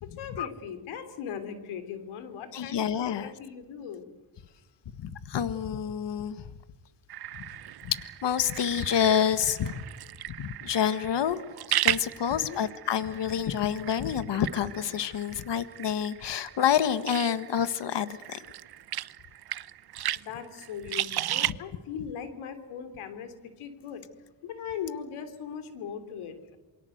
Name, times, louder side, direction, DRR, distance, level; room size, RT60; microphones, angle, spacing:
voice 1, 0.0-4.1 12.2-12.6 20.1-24.0 24.4-26.6, left 7 dB, 85° left, 9 dB, 3.4 m, -39 dB
voice 2, 2.5-3.3 5.0-6.5 7.3-7.5 7.8-9.8 10.4-11.4 11.8-18.4 21.5-21.6, left 9 dB, 60° left, 12 dB, 1.7 m, -28 dB
sound 1, 7.1-21.5, right 12 dB, 50° right, 0.8 m, -35 dB
28.0 x 23.0 x 8.0 m, 1.1 s
cardioid pair, 85°, 48 cm